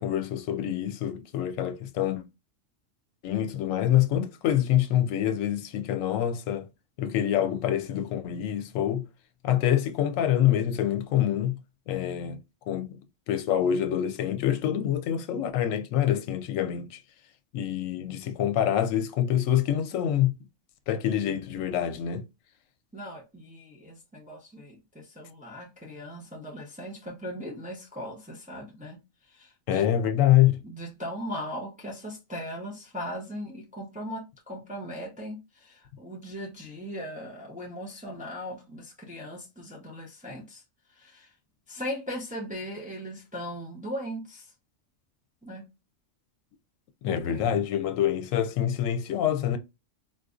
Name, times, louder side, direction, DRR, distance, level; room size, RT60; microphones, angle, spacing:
voice 1, 0.0-2.2 3.2-6.7 7.0-9.1 9.4-11.6 11.9-12.4 12.7-13.0 13.3-17.0 17.5-20.3 20.9-22.3 29.7-30.5 47.0-49.6, left 11 dB, 80° left, 1.0 m, -26 dB
voice 2, 22.9-29.0 29.2-29.9 30.6-40.6 40.9-41.3 41.7-44.5 45.4-45.7 47.1-47.6, equal, 10° right, 0.7 m, -39 dB
4.0 x 2.5 x 2.4 m
omnidirectional pair, 1.4 m